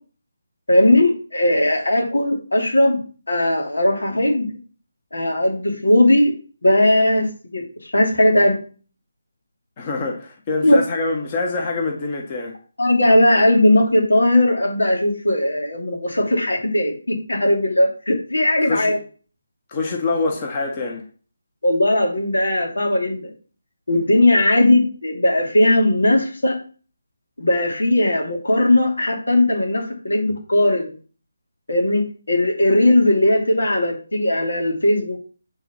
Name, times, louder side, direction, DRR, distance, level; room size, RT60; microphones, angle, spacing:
voice 1, 0.7-3.0 3.3-4.6 5.1-6.3 6.6-8.6 10.6-10.8 12.8-19.0 21.6-23.3 23.9-26.6 27.4-30.9 31.7-32.0 32.3-35.2, left 1 dB, 75° left, 2.8 m, -18 dB
voice 2, 9.8-12.6 18.6-19.0 19.7-21.0, left 3 dB, 30° left, 1.5 m, -25 dB
8.9 x 4.1 x 6.0 m
figure-of-eight pair, 155°, 0 cm